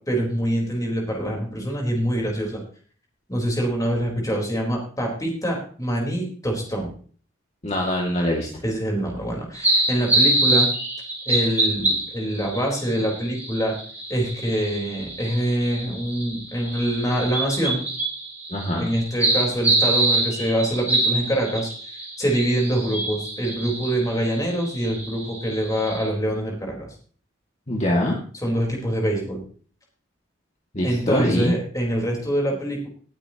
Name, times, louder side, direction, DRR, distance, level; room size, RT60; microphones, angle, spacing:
voice 1, 0.0-2.6 3.3-6.9 8.6-10.7 11.3-13.7 14.1-17.9 18.8-21.7 22.2-26.9 28.4-29.4 30.8-32.9, right 1 dB, 15° left, 0 dB, 4.2 m, -25 dB
voice 2, 7.6-8.5 18.5-18.9 27.7-28.1 30.7-31.5, left 1 dB, 35° left, -2 dB, 2.2 m, -23 dB
sound 1, 9.5-26.1, right 2 dB, 10° right, 3.3 m, -26 dB
19.5 x 8.8 x 3.0 m, 0.43 s
head